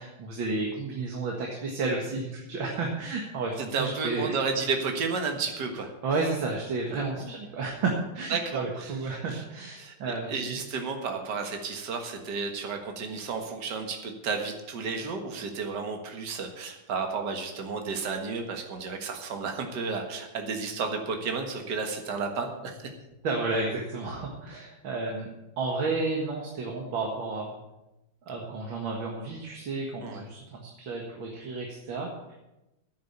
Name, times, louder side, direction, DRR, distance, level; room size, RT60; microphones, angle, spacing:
voice 1, 0.0-4.3 6.0-10.6 23.2-25.3 25.6-27.6 28.3-32.4, right 3 dB, 75° right, 0 dB, 2.4 m, -32 dB
voice 2, 3.7-5.9 6.9-7.3 8.3-9.4 9.8-22.9 30.0-30.2, right 4 dB, 60° right, 4 dB, 2.1 m, -32 dB
10.5 x 9.0 x 8.0 m, 0.96 s
omnidirectional pair, 2.2 m